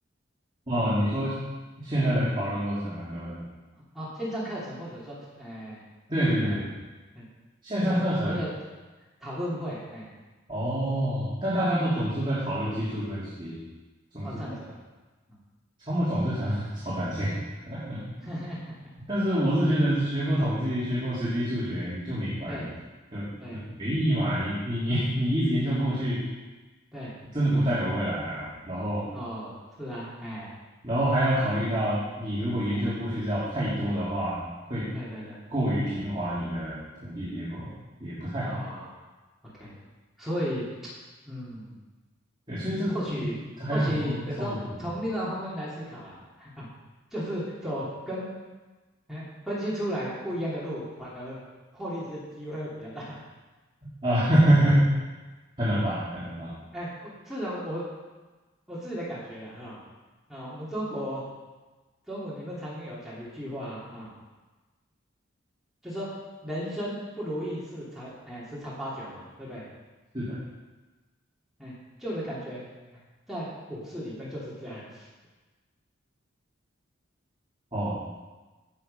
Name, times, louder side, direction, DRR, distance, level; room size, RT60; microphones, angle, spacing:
voice 1, 0.7-1.3 1.8-3.4 6.1-6.7 7.6-8.4 10.5-13.6 14.1-14.3 15.9-17.3 17.7-18.0 19.1-22.6 23.1-23.3 23.8-26.2 27.3-29.1 30.8-34.4 34.7-34.9 35.5-37.7 38.0-38.6 42.5-43.0 43.6-44.2 44.5-44.6 54.0-54.8 55.6-56.5 70.1-70.4 77.7-78.1, equal, 25° right, -10 dB, 3.1 m, -26 dB
voice 2, 3.9-5.8 6.4-6.6 7.1-7.2 7.7-8.5 9.2-10.1 14.2-14.8 15.3-15.4 18.1-18.7 22.5-22.7 23.4-23.6 26.9-27.1 29.1-30.5 32.7-32.8 34.9-35.4 38.4-38.9 39.6-39.7 40.2-40.9 41.3-41.7 42.9-43.4 43.7-46.7 47.1-48.3 49.1-51.4 51.7-53.2 56.7-57.8 58.7-59.8 60.3-61.2 62.1-64.1 65.8-66.1 66.4-69.6 71.6-71.7 72.0-73.0 73.3-75.1, equal, ahead, -8 dB, 2.6 m, -35 dB
16.0 x 6.9 x 5.3 m, 1.2 s
head